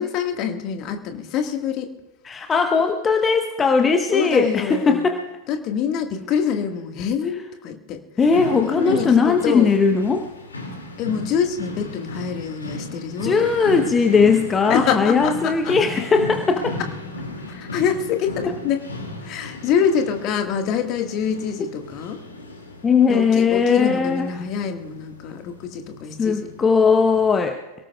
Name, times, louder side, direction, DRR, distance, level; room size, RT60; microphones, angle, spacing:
voice 1, 0.0-1.9 4.1-5.1 5.5-8.0 8.5-9.7 11.0-13.6 14.7-15.8 17.5-18.8 19.2-22.2 23.1-26.5, left 7 dB, 40° left, 5 dB, 1.6 m, -25 dB
voice 2, 2.2-5.2 8.2-10.3 13.2-16.7 21.6-21.7 22.8-24.3 26.2-27.6, left 5 dB, 20° left, 6 dB, 0.9 m, -18 dB
sound 1, 8.2-27.3, left 2 dB, 75° left, 2.4 m, -36 dB
27.5 x 18.0 x 2.3 m, 1.0 s
figure-of-eight pair, 90°, 0 cm